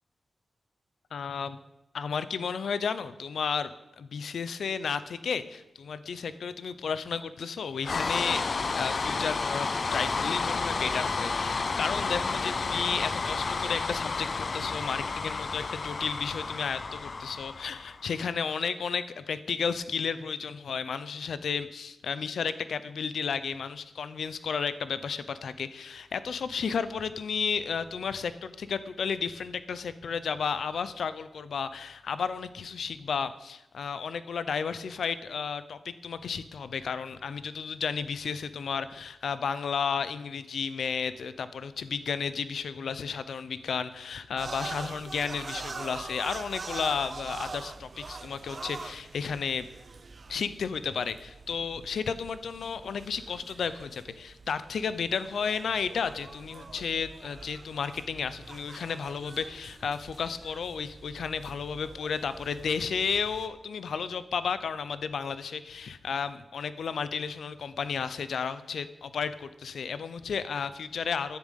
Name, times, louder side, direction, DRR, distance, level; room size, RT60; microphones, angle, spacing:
voice 1, 1.1-1.6 1.9-3.7 4.0-8.4 8.7-49.7 50.3-71.4, left 6 dB, 85° left, 14 dB, 0.7 m, -33 dB
sound 1, 7.8-18.1, left 4 dB, 45° left, 0.6 m, -31 dB
sound 2, 44.4-63.5, right 4 dB, 45° right, 0.7 m, -44 dB
9.9 x 7.6 x 9.1 m, 0.94 s
wide cardioid pair, 110°, 0 cm